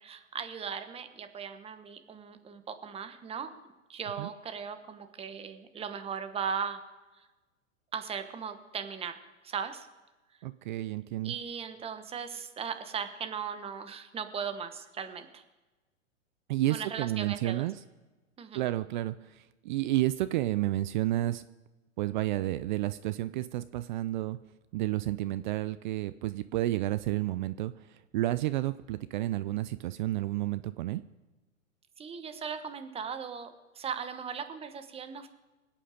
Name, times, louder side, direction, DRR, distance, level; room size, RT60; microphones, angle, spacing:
voice 1, 0.0-3.5 3.9-6.8 7.2-7.3 7.9-9.2 9.4-9.9 11.2-15.4 16.7-17.6 18.4-18.6 32.0-35.3, right 7 dB, 15° right, 9 dB, 1.0 m, -38 dB
voice 2, 10.4-11.3 16.5-17.7 18.5-21.4 22.0-24.4 24.7-27.7 28.1-31.0, right 15 dB, 40° right, 14 dB, 0.4 m, -31 dB
25.0 x 8.6 x 5.0 m, 1.2 s
hypercardioid pair, 120°, 41 cm